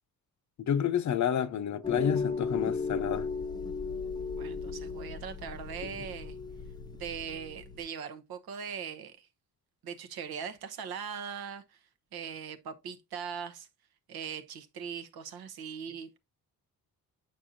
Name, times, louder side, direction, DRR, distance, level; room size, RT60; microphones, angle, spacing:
voice 1, 0.6-3.3 5.8-6.0, left 8 dB, 50° left, 0.6 m, -30 dB
sound 1, 1.8-7.8, left 5 dB, 10° left, 0.6 m, -36 dB
voice 2, 4.3-6.3 6.9-9.3 9.8-11.8 12.1-13.7 14.1-16.2, right 7 dB, 80° right, 1.0 m, -40 dB
8.6 x 5.3 x 2.6 m
cardioid pair, 105°, 36 cm